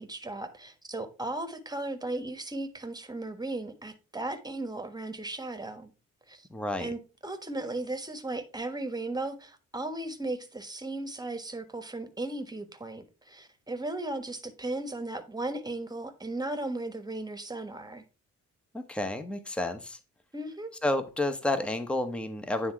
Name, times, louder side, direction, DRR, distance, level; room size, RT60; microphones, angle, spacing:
voice 1, 0.0-5.9 6.3-6.5 6.8-18.0 20.3-20.7, right 2 dB, 15° right, 1.2 m, -36 dB
voice 2, 6.5-6.9 18.7-20.0 20.8-22.7, left 2 dB, 5° left, 0.9 m, -30 dB
9.5 x 3.6 x 4.6 m
cardioid pair, 90°, 30 cm